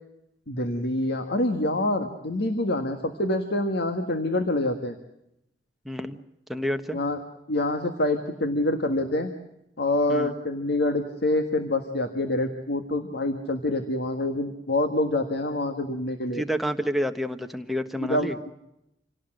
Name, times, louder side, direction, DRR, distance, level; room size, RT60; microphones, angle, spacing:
voice 1, 0.5-5.0 6.9-7.2 7.5-9.3 9.8-16.4 18.0-18.5, left 1 dB, 65° left, 6 dB, 1.7 m, -26 dB
voice 2, 5.8-6.2 6.5-7.0 10.1-10.3 16.3-18.4, equal, ahead, 6 dB, 1.3 m, -29 dB
27.0 x 17.5 x 7.7 m, 0.85 s
head